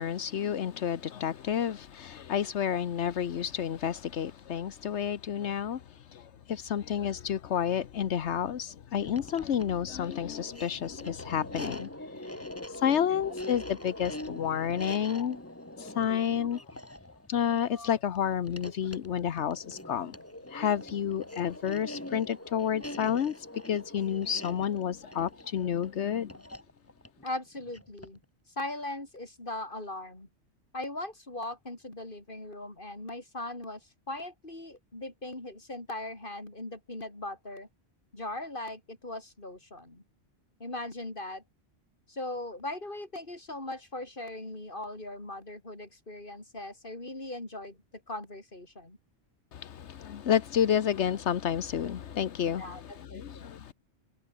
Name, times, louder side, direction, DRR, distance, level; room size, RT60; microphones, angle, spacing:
voice 1, 0.0-5.8 6.1-6.2 6.5-11.9 12.4-15.4 15.8-16.6 17.3-20.1 20.5-23.3 23.7-26.3 49.5-53.7, left 9 dB, 80° left, 1.2 m, -30 dB
sound 1, 9.0-28.2, left 1 dB, 10° left, 2.3 m, -43 dB
voice 2, 27.2-28.2 28.6-30.3 30.7-37.7 38.1-40.0 40.6-41.4 42.1-47.8 48.1-49.0 52.5-53.5, left 2 dB, 50° left, 5.0 m, -39 dB
omnidirectional pair, 1.1 m